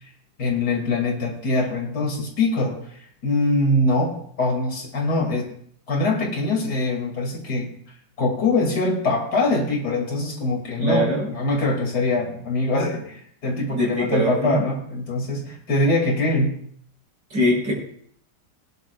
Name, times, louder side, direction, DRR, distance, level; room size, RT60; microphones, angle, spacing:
voice 1, 0.4-2.8 3.2-5.5 5.9-7.7 8.2-16.5, left 2 dB, 60° left, -1 dB, 3.3 m, -23 dB
voice 2, 10.8-11.3 13.7-14.6 17.3-17.7, equal, 85° right, -3 dB, 5.4 m, -22 dB
20.5 x 10.5 x 2.5 m, 0.63 s
omnidirectional pair, 1.9 m